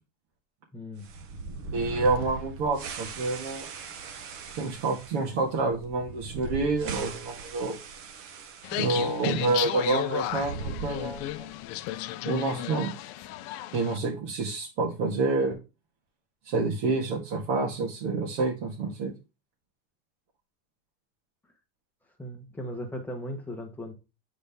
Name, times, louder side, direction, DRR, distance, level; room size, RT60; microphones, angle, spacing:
voice 1, 0.7-1.1 22.2-23.9, equal, 5° left, 1.0 m, -37 dB
sound 1, 1.0-9.2 9.4-9.5 10.2-11.5, right 3 dB, 35° right, 0.8 m, -40 dB
voice 2, 1.7-3.7 4.5-7.8 8.8-11.5 12.3-12.9 13.7-15.6 16.4-19.1, right 3 dB, 65° right, 1.9 m, -28 dB
sound 2, 8.6-14.0, left 14 dB, 40° left, 0.5 m, -33 dB
8.5 x 4.1 x 3.5 m
supercardioid pair, 165°, 40 cm